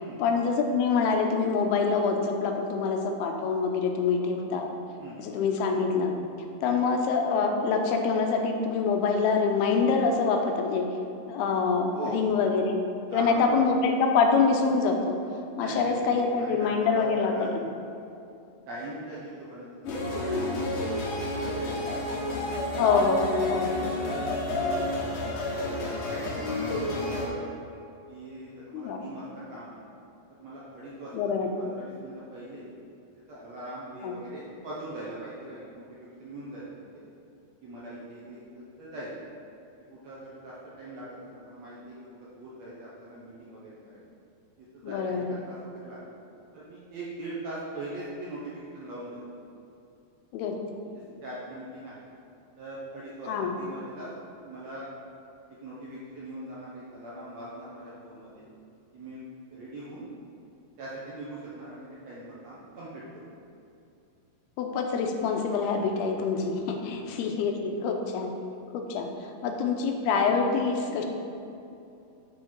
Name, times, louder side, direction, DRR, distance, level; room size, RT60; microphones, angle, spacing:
voice 1, 0.2-4.7 5.2-6.1 6.6-10.8 11.3-12.8 13.1-15.2 15.6-17.3 22.8-23.7 28.7-29.0 31.1-31.5 34.0-34.1 44.8-45.4 50.3-50.6 53.3-53.5 64.6-68.3 68.7-69.1 69.4-71.1, left 5 dB, 85° left, 3 dB, 2.6 m, -25 dB
voice 2, 11.9-12.4 13.1-13.6 15.5-17.5 18.7-20.6 21.2-22.0 22.6-25.1 25.6-27.6 28.1-29.8 30.3-31.3 31.6-32.6 33.3-37.0 37.6-39.1 39.9-44.1 44.6-46.1 46.5-49.2 50.9-52.0 52.6-54.1 54.4-54.9 55.6-58.4 58.9-59.2 59.5-60.1 60.8-63.4 67.0-67.2 67.7-67.9, right 1 dB, 75° right, -7 dB, 1.5 m, -41 dB
sound 1, 19.8-27.3, left 2 dB, 65° left, 2.4 m, -30 dB
6.7 x 6.3 x 4.4 m, 2.7 s
omnidirectional pair, 4.5 m